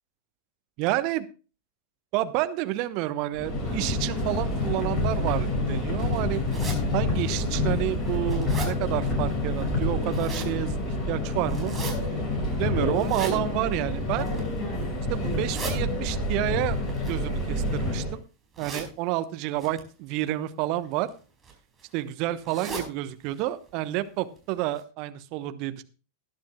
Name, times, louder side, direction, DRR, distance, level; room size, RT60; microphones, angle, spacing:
voice 1, 0.8-1.3 2.1-6.4 6.9-10.8 11.1-11.8 12.6-14.3 15.1-16.8 17.1-18.2 18.6-21.1 21.9-25.8, right 15 dB, 45° right, 12 dB, 1.0 m, -29 dB
Subway metro underground, 3.3-18.2, left 2 dB, 25° left, 6.3 m, -28 dB
sound 1, 6.5-6.8 7.4-7.5 7.9-8.7 9.8-10.5 11.5-11.9 12.9-13.4 14.1-14.5 15.2-15.7 16.9-17.9 18.5-18.9 19.6-19.8 20.8-21.1 21.4-21.5 21.8-21.9 22.4-22.9 23.3-23.4 23.7-23.8 24.4-24.5 24.8-24.9, right 4 dB, 20° right, 5.0 m, -37 dB
19.5 x 10.5 x 2.3 m, 0.34 s
figure-of-eight pair, 90°, 0 cm